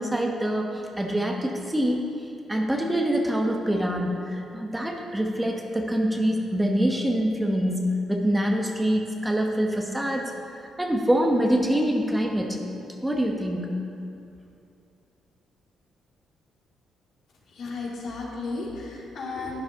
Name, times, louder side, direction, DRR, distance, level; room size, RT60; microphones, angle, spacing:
voice 1, 0.0-2.0 2.5-12.6 13.0-13.7, equal, 10° right, 1 dB, 1.0 m, -25 dB
voice 2, 17.5-19.6, left 3 dB, 65° left, -3 dB, 2.4 m, -34 dB
12.0 x 9.3 x 3.6 m, 2.6 s
cardioid pair, 90°, 0 cm